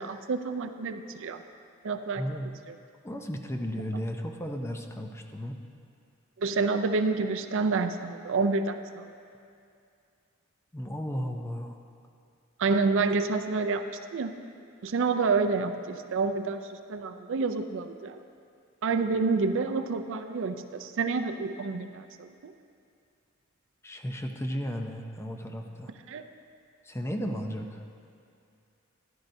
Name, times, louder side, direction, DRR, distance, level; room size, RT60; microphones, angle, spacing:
voice 1, 0.0-1.4 1.8-2.2 6.4-9.0 12.6-13.8 14.1-14.3 14.8-18.2 18.8-22.5 26.1-26.2, right 4 dB, 65° right, 8 dB, 0.5 m, -28 dB
voice 2, 2.2-2.5 3.0-5.6 10.7-11.8 13.0-13.1 23.8-25.9 26.8-27.8, equal, 10° left, 3 dB, 0.6 m, -34 dB
14.5 x 11.0 x 2.7 m, 2.4 s
head